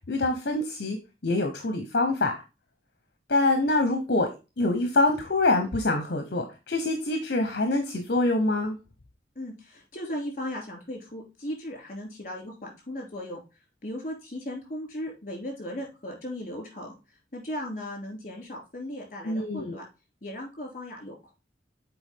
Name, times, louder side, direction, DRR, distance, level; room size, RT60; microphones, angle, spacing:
voice 1, 0.1-1.0 1.2-2.3 3.3-4.3 4.6-8.8 19.2-19.8, left 2 dB, 60° left, 5 dB, 0.9 m, -25 dB
voice 2, 9.3-13.4 13.8-16.9 17.3-19.8 20.2-21.3, left 1 dB, 45° left, 2 dB, 2.8 m, -37 dB
7.0 x 4.5 x 3.6 m, 0.29 s
head